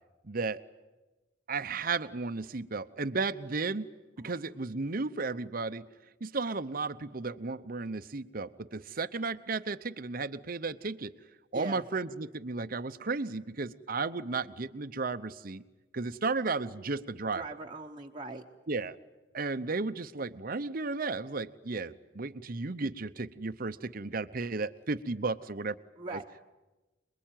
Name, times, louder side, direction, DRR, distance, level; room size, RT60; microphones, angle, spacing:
voice 1, 0.2-0.6 1.5-3.9 4.2-5.9 6.2-11.1 11.5-15.6 15.9-17.4 18.7-19.0 19.3-25.7 26.1-26.2, right 3 dB, 50° right, 11 dB, 0.8 m, -34 dB
voice 2, 11.5-11.8 17.3-18.4 26.0-26.3, right 2 dB, 25° right, -1 dB, 1.1 m, -41 dB
27.0 x 21.5 x 9.2 m, 1.1 s
head